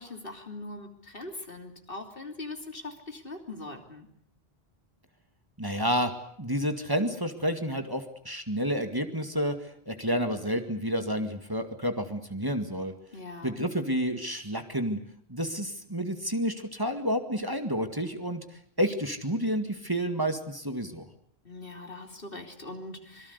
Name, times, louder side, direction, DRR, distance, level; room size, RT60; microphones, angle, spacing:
voice 1, 0.0-4.1 13.1-13.7 21.4-23.3, left 2 dB, 60° left, 5 dB, 3.4 m, -41 dB
voice 2, 5.6-6.1 6.4-12.9 13.4-15.0 15.3-18.4 18.8-21.1, equal, 20° right, 7 dB, 2.1 m, -30 dB
26.0 x 23.0 x 8.2 m, 0.64 s
omnidirectional pair, 1.0 m